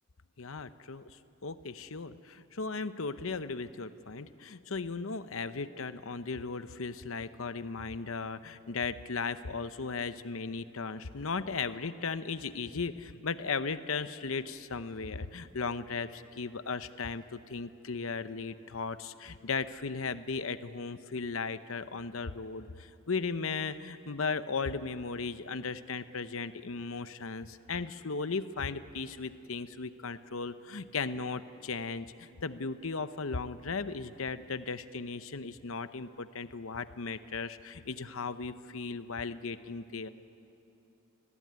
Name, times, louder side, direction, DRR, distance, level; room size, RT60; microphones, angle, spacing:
voice 1, 0.4-40.1, left 4 dB, 65° left, 12 dB, 0.8 m, -36 dB
29.0 x 20.0 x 9.5 m, 2.8 s
head